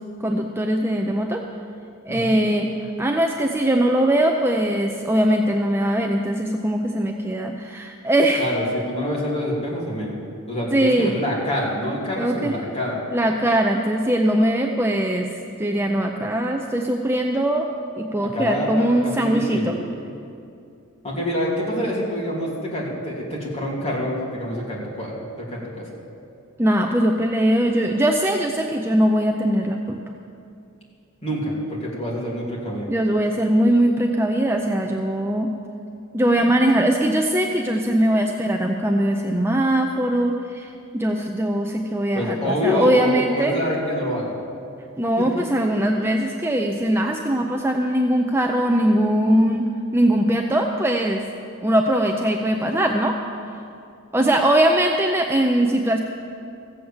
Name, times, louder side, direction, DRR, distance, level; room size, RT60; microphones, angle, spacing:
voice 1, 0.2-1.4 2.1-8.5 10.7-11.1 12.2-12.5 13.1-15.3 15.6-17.7 18.0-19.8 26.6-30.0 32.9-35.5 36.1-43.6 45.0-49.7 49.9-51.3 51.6-53.2 54.1-56.0, right 1 dB, 10° right, 2 dB, 0.5 m, -21 dB
voice 2, 2.1-2.4 8.4-10.1 10.5-13.0 18.2-19.8 21.0-25.9 31.2-32.9 42.1-44.3 45.2-45.3, equal, 30° left, -4 dB, 3.0 m, -26 dB
15.5 x 7.9 x 7.2 m, 2.5 s
head